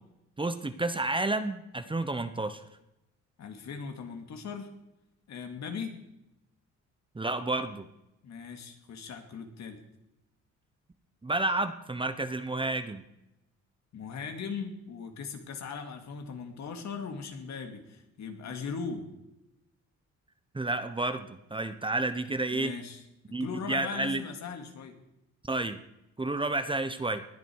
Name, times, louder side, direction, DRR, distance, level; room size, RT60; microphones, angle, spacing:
voice 1, 0.4-2.6 7.1-7.9 11.2-13.0 20.5-22.7 23.3-24.2 25.4-25.8 26.2-27.2, right 2 dB, 15° right, 11 dB, 1.0 m, -30 dB
voice 2, 3.4-4.7 5.3-6.0 8.2-9.8 13.9-19.1 22.5-23.0 23.4-25.0, left 5 dB, 65° left, 5 dB, 2.6 m, -39 dB
20.0 x 10.5 x 4.7 m, 0.90 s
cardioid pair, 90°, 30 cm